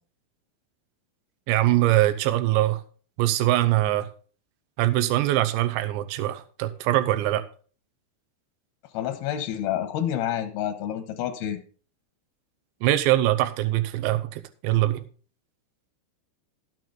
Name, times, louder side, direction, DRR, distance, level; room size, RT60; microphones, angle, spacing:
voice 1, 1.5-2.8 3.2-4.1 4.8-7.4 12.8-15.1, right 15 dB, 80° right, 2.7 m, -23 dB
voice 2, 8.9-11.6, left 11 dB, 80° left, 2.2 m, -28 dB
12.5 x 9.3 x 3.8 m
omnidirectional pair, 5.8 m